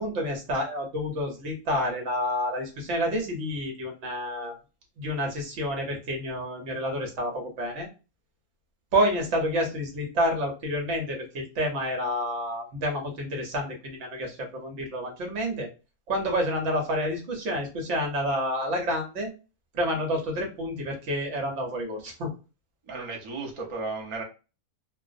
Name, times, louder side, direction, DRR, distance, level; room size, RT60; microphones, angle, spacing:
voice 1, 0.0-4.5 5.0-7.9 8.9-15.7 16.1-19.3 19.7-22.3, equal, 60° right, 2 dB, 1.1 m, -29 dB
voice 2, 22.9-24.2, right 3 dB, 40° right, 0 dB, 0.4 m, -34 dB
2.6 x 2.0 x 2.4 m, 0.31 s
omnidirectional pair, 1.5 m